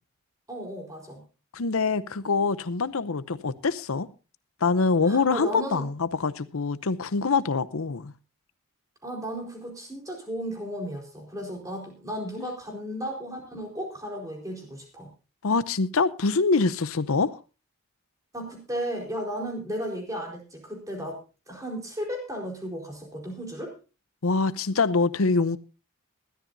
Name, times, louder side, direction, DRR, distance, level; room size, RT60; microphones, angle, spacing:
voice 1, 0.5-1.2 5.0-5.8 9.0-15.1 18.3-21.2 21.5-23.7, equal, 15° right, 4.3 m, -34 dB
voice 2, 1.5-4.1 4.6-8.1 12.4-12.5 15.4-17.4 24.2-25.6, left 4 dB, 70° left, 0.7 m, -25 dB
20.5 x 13.0 x 2.7 m
head